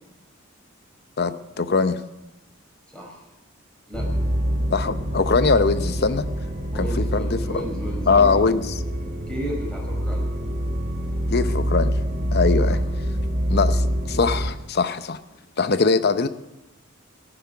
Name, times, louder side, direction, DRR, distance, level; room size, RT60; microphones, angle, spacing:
voice 1, 1.2-2.0 4.7-6.3 6.7-7.6 8.1-8.7 11.3-11.9 12.3-12.8 13.5-15.2 15.6-16.3, left 4 dB, 50° left, 12 dB, 0.7 m, -21 dB
voice 2, 2.9-3.2 3.9-4.1 6.7-8.4 9.3-10.3 12.7-12.8, equal, 5° left, -1 dB, 4.8 m, -34 dB
sound 1, 3.9-14.5, equal, 40° right, 4.1 m, -25 dB
14.5 x 11.5 x 7.0 m, 0.98 s
head